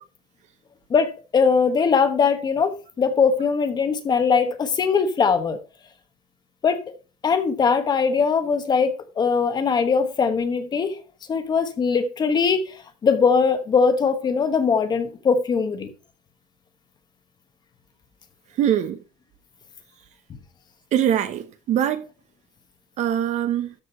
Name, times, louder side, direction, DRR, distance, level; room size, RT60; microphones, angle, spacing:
voice 1, 0.9-5.6 6.6-6.8 7.2-11.0 11.3-15.9, left 5 dB, 25° left, 1.2 m, -21 dB
voice 2, 18.6-19.0 20.9-22.0 23.0-23.7, right 10 dB, 45° right, 1.0 m, -22 dB
13.0 x 5.1 x 5.5 m
cardioid pair, 175°, 16 cm